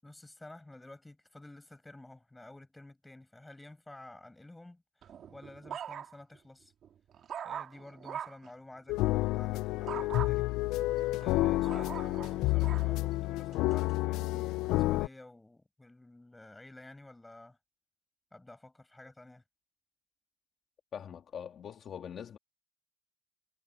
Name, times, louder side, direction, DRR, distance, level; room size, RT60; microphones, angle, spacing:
voice 1, 0.0-6.7 7.4-10.5 11.2-17.6 18.3-19.4, left 2 dB, 5° left, 6.1 m, -52 dB
sound 1, 5.0-6.4 6.8-8.5 9.9-10.3 10.9-12.9 13.5-13.9, right 8 dB, 40° right, 1.7 m, -42 dB
sound 2, 8.9-15.1, left 19 dB, 70° left, 0.3 m, -30 dB
voice 2, 20.9-22.4, left 8 dB, 35° left, 2.4 m, -43 dB
cardioid pair, 165°, 0 cm